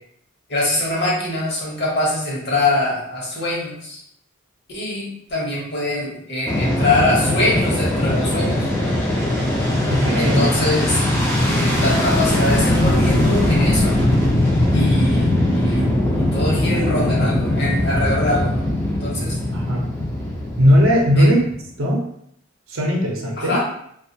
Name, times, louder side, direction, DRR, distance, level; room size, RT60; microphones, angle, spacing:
voice 1, 0.5-4.0 4.7-8.9 10.2-11.0 11.4-14.0 14.7-15.9 16.2-18.6 19.0-19.4 21.2-21.4 23.4-23.6, left 1 dB, 50° left, -5 dB, 0.9 m, -23 dB
Fixed-wing aircraft airplane, 6.5-21.6, left 1 dB, 10° left, 0.4 m, -20 dB
voice 2, 9.9-10.4 19.5-19.9 20.6-21.4 21.8-22.0 22.7-23.6, equal, 70° right, 0 dB, 0.6 m, -17 dB
2.2 x 2.2 x 2.7 m, 0.69 s
head